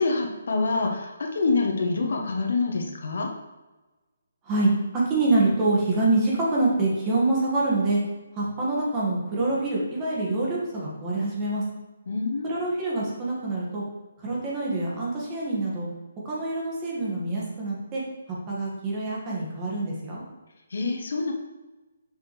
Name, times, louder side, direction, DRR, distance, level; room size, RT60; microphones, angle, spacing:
voice 1, 0.0-3.3 12.1-12.5 20.7-21.3, left 3 dB, 65° left, 2 dB, 1.4 m, -26 dB
voice 2, 4.4-8.0 8.3-11.6 12.4-13.8 14.2-15.9 16.2-18.0 18.5-20.2, right 2 dB, 20° right, -5 dB, 2.0 m, -25 dB
6.9 x 6.0 x 3.4 m, 1.1 s
hypercardioid pair, 165°, 0 cm